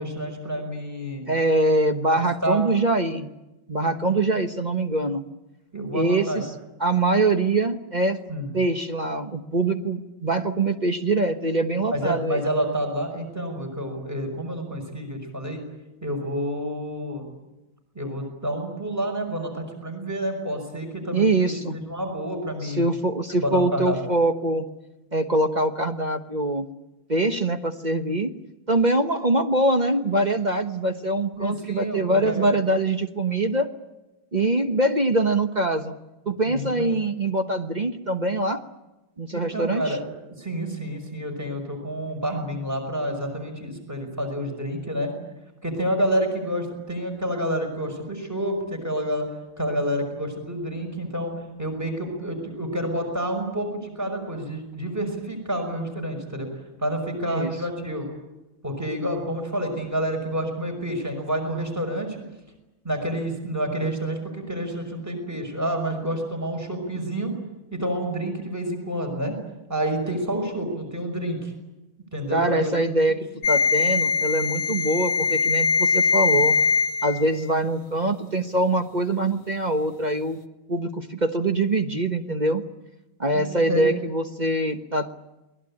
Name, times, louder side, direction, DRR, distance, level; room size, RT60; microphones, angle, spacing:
voice 1, 0.0-1.3 2.1-2.6 4.1-4.2 5.7-6.4 8.3-8.5 11.9-15.6 16.0-17.3 17.9-22.9 23.4-24.0 31.3-32.5 36.4-36.9 39.3-40.1 40.4-45.1 45.6-49.3 49.6-51.3 51.6-58.1 58.6-62.2 62.8-67.3 67.7-69.4 69.7-71.5 72.1-72.7 83.3-83.9, equal, 10° right, 3 dB, 5.7 m, -29 dB
voice 2, 1.3-3.3 3.7-5.2 5.9-6.5 6.8-8.2 8.5-12.5 21.1-21.8 22.6-24.7 25.1-26.7 27.1-28.3 28.7-33.7 34.3-35.9 36.3-38.6 39.2-40.0 57.2-57.5 72.3-73.2 73.5-76.6 77.0-80.4 80.7-82.6 83.2-85.1, right 2 dB, 30° right, 6 dB, 1.0 m, -23 dB
sound 1, 73.4-77.4, left 5 dB, 75° left, 1.9 m, -22 dB
29.0 x 21.0 x 8.8 m, 1.0 s
omnidirectional pair, 2.2 m